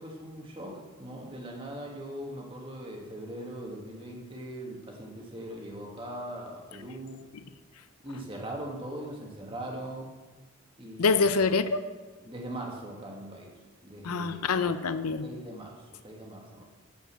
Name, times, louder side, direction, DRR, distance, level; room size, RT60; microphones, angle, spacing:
voice 1, 0.0-7.2 8.0-10.1 10.8-11.2 12.2-13.5 13.8-14.7 15.2-16.7, right 1 dB, 25° right, -1 dB, 1.8 m, -40 dB
voice 2, 11.0-11.8 14.0-15.3, left 4 dB, 90° left, 12 dB, 0.6 m, -25 dB
11.5 x 5.4 x 7.6 m, 1.3 s
head